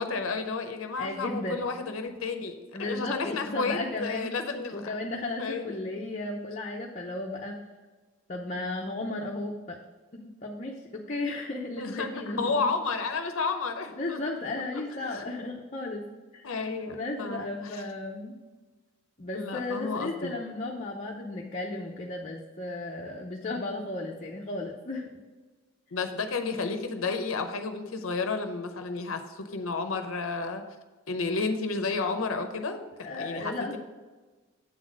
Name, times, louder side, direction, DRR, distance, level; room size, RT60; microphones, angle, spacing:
voice 1, 0.0-4.8 5.4-5.7 11.8-14.2 15.1-15.3 16.4-17.8 19.3-20.4 25.9-30.6 31.1-32.8 33.2-33.8, left 4 dB, 75° left, 7 dB, 0.7 m, -31 dB
voice 2, 1.0-1.7 2.7-4.3 4.7-7.6 8.3-9.8 10.1-12.7 13.9-16.0 16.3-16.5 16.9-18.4 19.2-25.1 33.0-33.8, left 2 dB, 35° left, -1 dB, 0.7 m, -34 dB
8.5 x 4.1 x 6.2 m, 1.3 s
head